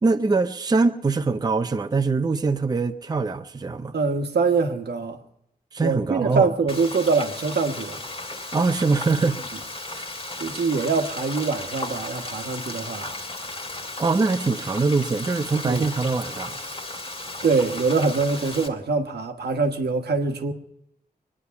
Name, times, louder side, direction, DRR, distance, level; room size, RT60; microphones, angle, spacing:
voice 1, 0.0-3.9 5.7-6.5 8.5-9.4 9.9-10.1 14.0-16.5, right 4 dB, 25° right, 0.5 m, -23 dB
voice 2, 3.9-5.2 5.8-8.0 10.4-13.1 15.6-15.9 17.4-20.5, right 4 dB, 85° right, 1.3 m, -24 dB
Frying (food), 6.7-18.7, left 2 dB, 35° left, 1.8 m, -35 dB
23.0 x 9.9 x 5.8 m
wide cardioid pair, 155°, 17 cm